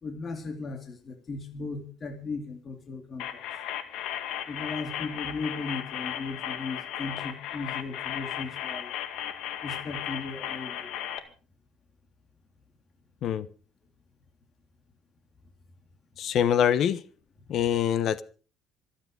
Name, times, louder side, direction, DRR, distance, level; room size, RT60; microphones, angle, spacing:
voice 1, 0.0-3.4 4.5-8.9 9.6-10.9, left 3 dB, 30° left, 3.0 m, -37 dB
sound 1, 3.2-11.2, left 10 dB, 80° left, 2.0 m, -35 dB
voice 2, 16.2-17.0 17.5-18.2, left 9 dB, 55° left, 1.2 m, -24 dB
26.5 x 9.1 x 5.1 m
cardioid pair, 140°, 0 cm